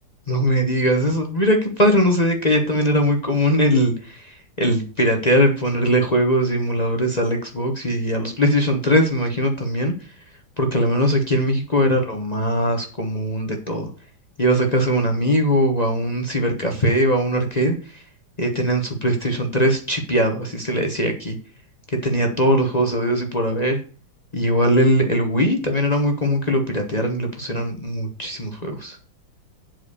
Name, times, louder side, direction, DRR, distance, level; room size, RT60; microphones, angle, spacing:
voice 1, 0.3-10.1 10.6-13.9 14.4-18.0 18.4-21.4 21.9-23.8 24.3-29.0, equal, 25° left, 3 dB, 0.9 m, -20 dB
7.7 x 4.8 x 6.7 m, 0.37 s
omnidirectional pair, 2.2 m